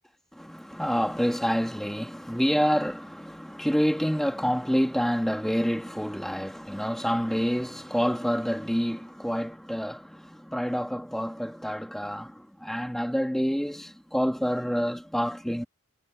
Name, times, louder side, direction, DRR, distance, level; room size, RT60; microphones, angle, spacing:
voice 1, 0.3-15.6, equal, ahead, 2.5 m, -28 dB
head